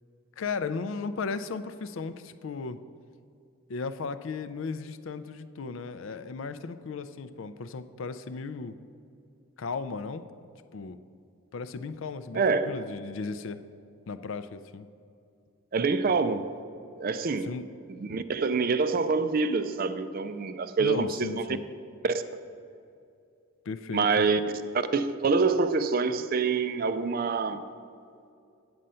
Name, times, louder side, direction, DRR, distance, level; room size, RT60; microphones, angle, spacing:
voice 1, 0.4-2.8 3.7-8.7 9.6-10.2 10.7-11.0 11.5-13.6 14.1-14.9 17.4-17.6 20.8-21.6 23.7-24.2, left 4 dB, 65° left, 0.4 m, -35 dB
voice 2, 12.3-12.7 15.7-16.5 17.0-17.5 18.0-21.4 22.0-22.2 23.9-24.4 24.7-27.6, right 4 dB, 45° right, 0.4 m, -26 dB
8.7 x 7.7 x 5.5 m
head